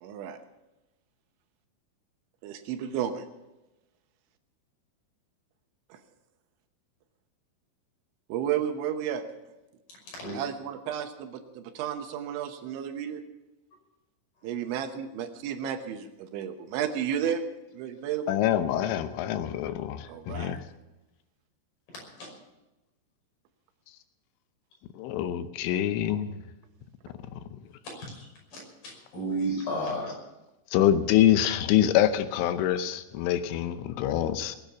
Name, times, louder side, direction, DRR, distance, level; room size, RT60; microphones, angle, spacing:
voice 1, 0.0-0.4 2.4-3.2 5.9-6.0 8.3-9.2 10.4-13.2 14.4-17.4 17.7-18.3 20.1-20.6, right 9 dB, 80° right, 7 dB, 3.3 m, -32 dB
voice 2, 18.3-20.6 24.9-26.4 30.7-34.6, left 11 dB, 85° left, 10 dB, 3.3 m, -25 dB
voice 3, 21.9-22.3 27.8-30.1, right 1 dB, 50° left, -1 dB, 7.3 m, -33 dB
21.0 x 9.1 x 7.0 m, 1.0 s
omnidirectional pair, 5.5 m